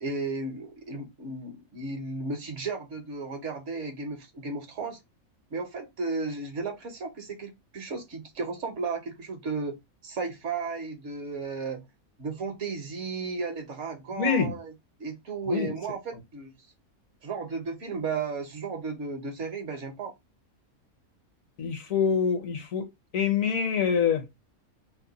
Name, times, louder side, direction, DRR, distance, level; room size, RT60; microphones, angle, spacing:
voice 1, 0.0-5.0 5.5-9.8 10.0-11.8 12.2-14.7 15.0-16.5 17.2-20.1, right 4 dB, 60° right, 1.0 m, -34 dB
voice 2, 14.1-14.5 15.5-15.7 21.6-22.8 23.1-24.2, left 6 dB, 70° left, 1.2 m, -25 dB
2.9 x 2.1 x 3.8 m
omnidirectional pair, 1.5 m